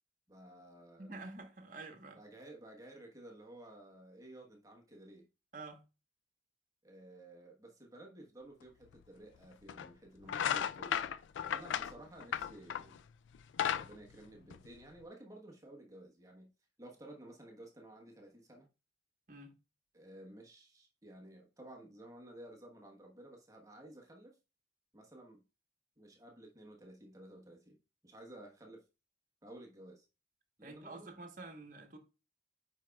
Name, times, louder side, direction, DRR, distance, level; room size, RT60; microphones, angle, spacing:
voice 1, 0.3-1.1 2.1-5.3 6.8-11.0 11.5-13.0 13.7-16.5 16.8-18.7 19.9-24.4 24.9-25.4 26.0-27.8 28.0-28.8 29.4-30.1 30.6-31.1, right 1 dB, 20° right, 1.1 m, -54 dB
voice 2, 1.0-2.2 5.5-5.8 19.3-19.5 30.6-32.0, right 2 dB, 45° right, 1.1 m, -48 dB
sound 1, 8.9-9.0 9.7-9.9 10.2-13.0 13.3-15.0, left 9 dB, 90° left, 0.3 m, -35 dB
9.0 x 4.6 x 2.3 m
head